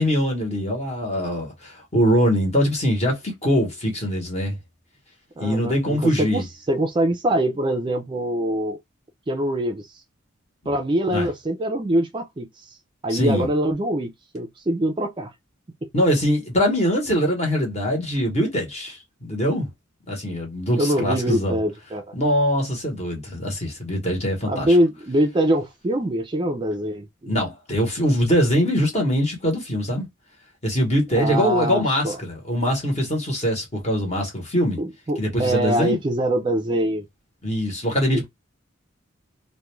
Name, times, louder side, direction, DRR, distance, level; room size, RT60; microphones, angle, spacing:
voice 1, 0.0-4.6 5.4-6.4 11.1-11.3 13.1-13.5 15.9-19.7 20.1-21.6 22.1-24.8 27.3-30.1 30.6-34.8 35.2-36.0 37.4-38.3, equal, 35° left, 0.9 m, -22 dB
voice 2, 5.4-8.8 9.3-9.9 10.7-12.8 13.0-15.3 15.8-15.9 20.7-22.1 24.5-27.3 31.1-32.2 34.8-37.0 38.1-38.3, right 1 dB, 25° right, 0.3 m, -24 dB
2.4 x 2.1 x 3.0 m
head